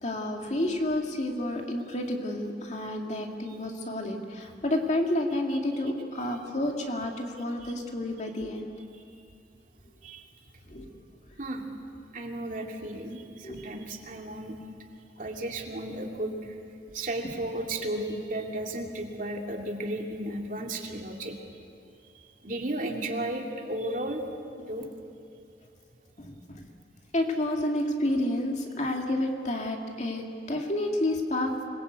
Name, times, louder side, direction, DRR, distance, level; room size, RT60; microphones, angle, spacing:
voice 1, 0.0-8.7 10.7-10.9 13.4-13.8 26.2-26.6 27.1-31.5, left 1 dB, 40° left, 2 dB, 2.4 m, -30 dB
voice 2, 12.1-14.6 15.2-16.6 16.9-21.4 22.4-24.2 24.6-24.9, right 1 dB, 50° right, 1 dB, 2.6 m, -34 dB
26.0 x 21.5 x 8.3 m, 2.6 s
head